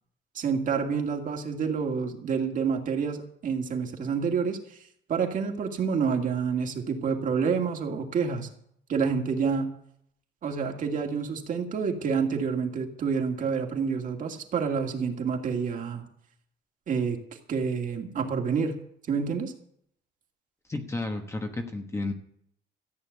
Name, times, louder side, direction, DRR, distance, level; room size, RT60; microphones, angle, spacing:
voice 1, 0.3-4.8 5.1-8.5 8.9-9.7 10.4-16.0 16.9-17.2 17.5-18.8 19.1-19.5, right 6 dB, 45° right, 3 dB, 2.2 m, -28 dB
voice 2, 20.7-22.1, left 2 dB, 15° left, 5 dB, 1.2 m, -32 dB
14.5 x 8.9 x 8.1 m, 0.68 s
cardioid pair, 180°, 19 cm